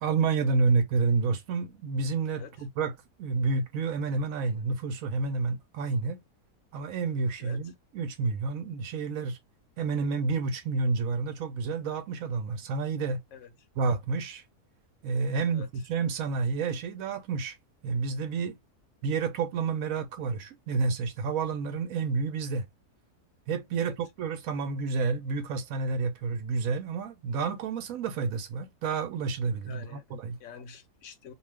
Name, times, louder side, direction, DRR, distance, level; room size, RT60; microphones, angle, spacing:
voice 1, 0.0-2.9 3.2-6.2 6.7-9.4 9.8-13.2 13.8-14.4 15.0-17.5 17.8-18.6 19.0-22.7 23.5-30.4, right 4 dB, 70° right, 0.9 m, -29 dB
voice 2, 15.3-15.7 23.8-23.9 29.7-30.0 30.4-31.3, left 6 dB, 65° left, 0.9 m, -46 dB
2.4 x 2.3 x 3.3 m
omnidirectional pair, 1.6 m